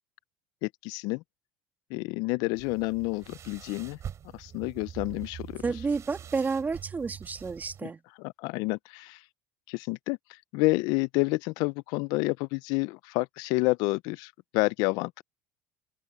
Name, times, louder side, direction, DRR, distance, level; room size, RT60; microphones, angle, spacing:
voice 1, 0.6-1.2 1.9-4.0 4.3-5.6 7.8-7.9 8.2-9.2 9.7-10.2 10.5-15.2, left 25 dB, 70° left, 0.5 m, -29 dB
sound 1, 2.6-7.8, right 9 dB, 45° right, 7.4 m, -44 dB
voice 2, 5.6-8.0, right 4 dB, 25° right, 2.8 m, -30 dB
open air
hypercardioid pair, 80°, 7 cm